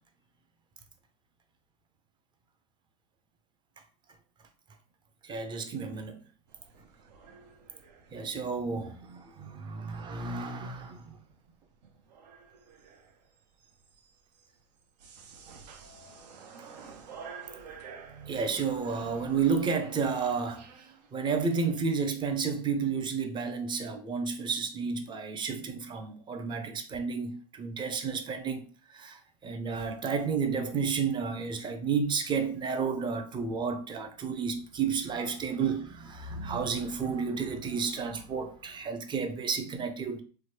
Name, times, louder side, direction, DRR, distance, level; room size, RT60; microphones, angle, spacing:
voice 1, 5.2-6.2 8.1-11.2 18.1-20.7 21.1-28.6 28.9-40.2, right 5 dB, 20° right, 0.5 m, -31 dB
sound 1, 6.5-21.7, right 5 dB, 85° right, 0.6 m, -52 dB
3.1 x 2.1 x 3.2 m
hypercardioid pair, 115°, 21 cm